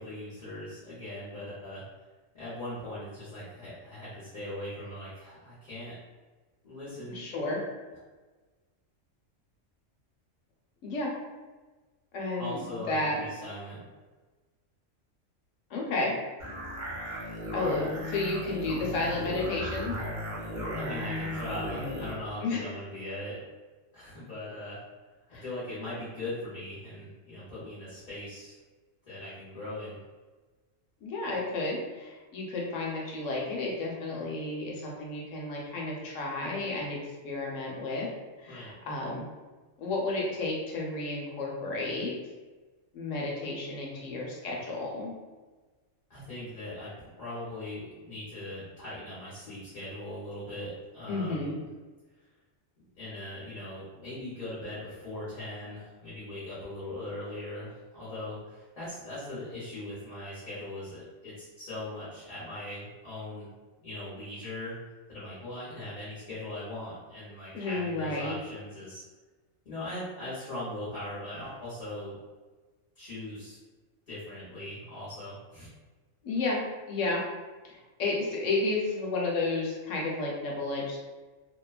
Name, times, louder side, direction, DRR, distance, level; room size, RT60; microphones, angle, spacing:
voice 1, 0.0-1.8 2.3-5.9 6.6-7.2 12.4-13.8 20.8-23.4 23.9-24.8 25.4-28.6 29.0-30.0 38.5-38.7 46.1-51.5 52.9-63.5 63.8-64.7 65.1-69.0 69.6-72.2 73.0-73.6 74.1-75.7, left 1 dB, 40° left, -10 dB, 0.9 m, -40 dB
voice 2, 7.1-7.6 10.8-11.1 12.1-13.3 15.7-16.2 17.0-17.3 17.5-20.0 22.4-22.6 25.3-25.4 31.0-37.0 37.2-38.1 38.4-39.3 39.8-42.1 42.9-45.2 51.1-51.5 67.5-68.3 76.2-76.6 76.9-77.2 77.6-81.0, left 2 dB, 75° left, -2 dB, 0.9 m, -32 dB
sound 1, 16.4-22.2, equal, 50° right, 0.6 m, -36 dB
2.7 x 2.2 x 2.3 m, 1.3 s
omnidirectional pair, 1.3 m